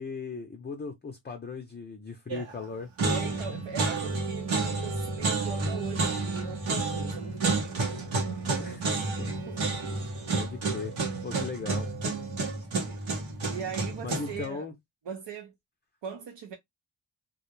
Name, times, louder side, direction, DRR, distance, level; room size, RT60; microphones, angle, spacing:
voice 1, 0.0-2.9 8.6-9.3 9.9-10.9 11.2-11.9 14.0-14.7, left 4 dB, 25° left, 0.5 m, -38 dB
sound 1, 2.3-2.6 3.0-14.5, right 3 dB, 90° right, 1.0 m, -30 dB
voice 2, 3.1-7.7 9.5-9.9 13.5-14.7 15.1-15.5 16.0-16.5, right 7 dB, 70° right, 0.7 m, -40 dB
2.3 x 2.1 x 3.0 m
cardioid pair, 65°, 45 cm